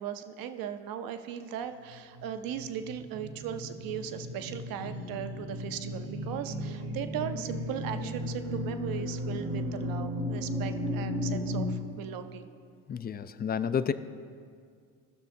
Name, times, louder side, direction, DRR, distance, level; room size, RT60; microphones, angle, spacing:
voice 1, 0.0-12.4, right 9 dB, 60° right, 9 dB, 0.8 m, -38 dB
sound 1, 1.8-11.6, left 1 dB, 80° right, 1.9 m, -35 dB
voice 2, 12.9-13.9, left 7 dB, 25° left, 13 dB, 0.4 m, -30 dB
16.5 x 6.3 x 2.7 m, 2.2 s
hypercardioid pair, 65°, 39 cm